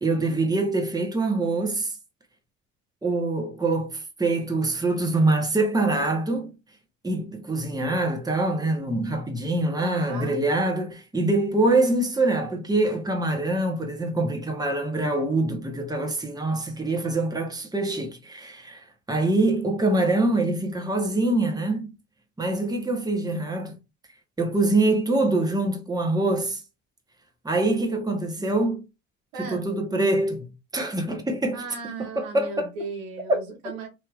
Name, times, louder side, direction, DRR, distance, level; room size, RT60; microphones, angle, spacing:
voice 1, 0.0-2.0 3.0-6.5 7.0-21.9 22.4-23.8 24.4-26.6 27.4-28.8 29.5-31.6 32.2-32.7, right 2 dB, 10° right, 1.1 m, -24 dB
voice 2, 9.8-10.4 29.3-29.7 31.5-33.9, right 3 dB, 80° right, 1.3 m, -36 dB
3.2 x 2.8 x 2.4 m
hypercardioid pair, 60°, 37 cm